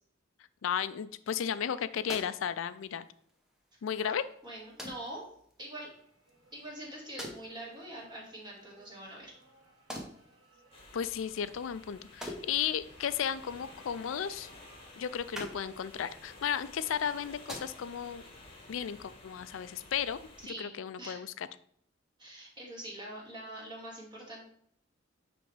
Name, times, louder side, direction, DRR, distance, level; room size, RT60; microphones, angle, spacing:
voice 1, 0.6-3.1 3.8-4.2 10.9-14.5 15.0-18.2 18.7-20.3 20.6-21.5, left 8 dB, 80° left, 14 dB, 0.4 m, -34 dB
sound 1, 1.6-18.2, equal, 5° right, 0.9 m, -50 dB
voice 2, 4.0-5.3 5.6-5.9 6.5-9.3 20.4-21.2 22.2-24.4, right 1 dB, 25° right, -3 dB, 2.1 m, -44 dB
sound 2, 5.7-17.2, right 1 dB, 90° right, 1.9 m, -63 dB
sound 3, 10.7-20.5, left 2 dB, 30° left, 1.2 m, -53 dB
9.3 x 3.4 x 3.2 m, 0.66 s
head